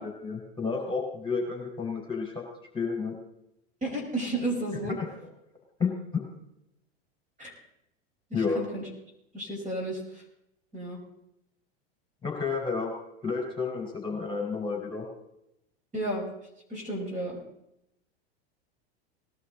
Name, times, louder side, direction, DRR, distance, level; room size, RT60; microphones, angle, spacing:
voice 1, 0.0-2.4 2.7-3.1 4.8-5.0 5.8-6.2 8.3-8.6 12.2-12.9 13.2-15.1, left 5 dB, 15° left, 0 dB, 4.8 m, -31 dB
voice 2, 3.8-5.0 7.4-7.5 8.3-8.9 9.3-10.2 10.7-11.0 15.9-16.3 16.7-17.4, right 1 dB, 25° right, 0 dB, 5.0 m, -32 dB
19.5 x 12.0 x 4.0 m, 0.81 s
hypercardioid pair, 100°, 33 cm